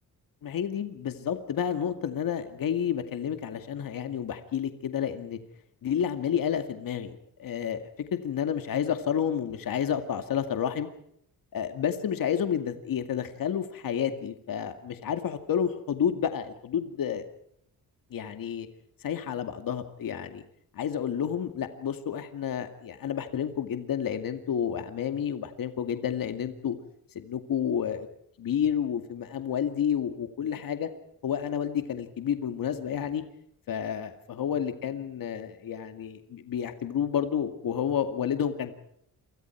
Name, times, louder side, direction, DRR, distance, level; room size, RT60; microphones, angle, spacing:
voice 1, 0.4-5.4 5.8-7.8 8.1-10.9 11.5-17.2 18.1-18.7 19.0-20.4 20.7-26.8 27.1-28.1 28.4-30.9 31.2-33.2 33.7-38.8, left 8 dB, 70° left, 8 dB, 2.3 m, -30 dB
29.0 x 25.0 x 4.7 m, 0.68 s
cardioid pair, 130°, 36 cm